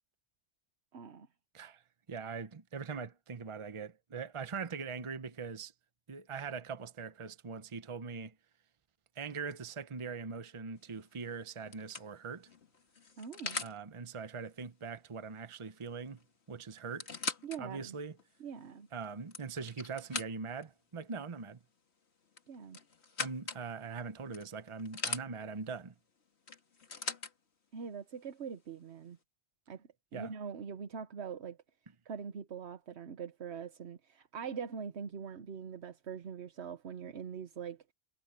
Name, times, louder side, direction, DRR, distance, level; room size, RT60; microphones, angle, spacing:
voice 1, 0.9-1.3 13.2-13.6 17.4-17.9 18.4-18.9 22.5-22.8 27.7-29.2 29.7-29.8 30.1-31.6 32.0-37.8, right 6 dB, 80° right, 1.3 m, -43 dB
voice 2, 2.1-5.7 6.1-8.3 9.2-12.5 13.6-17.1 17.6-18.2 18.9-21.6 23.2-25.9 30.1-30.3, right 5 dB, 30° right, 0.8 m, -42 dB
sound 1, 10.8-11.1 11.7-13.8 15.8-15.9 16.2-16.3 16.8-17.6 18.2-18.3 19.0-20.6 22.3-23.6 24.3-25.3 26.5-27.3 28.3-28.4, left 4 dB, 80° left, 2.1 m, -40 dB
omnidirectional pair, 1.1 m